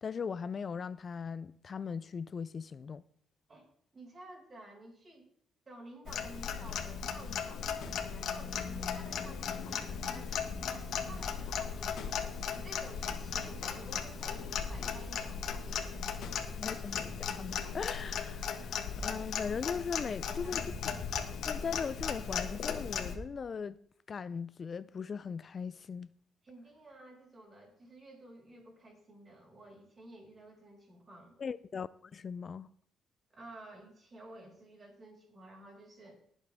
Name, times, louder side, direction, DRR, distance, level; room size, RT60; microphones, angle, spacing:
voice 1, 0.0-3.0 16.5-20.6 21.4-23.8 24.1-26.1 31.4-32.7, left 6 dB, 45° left, 0.4 m, -39 dB
voice 2, 3.9-5.3 5.7-16.1 20.4-20.6 26.4-31.4 33.3-36.2, right 2 dB, 35° right, 6.0 m, -53 dB
Clock, 6.1-23.2, left 7 dB, 70° left, 1.7 m, -37 dB
19.5 x 8.1 x 3.5 m
cardioid pair, 90°, 0 cm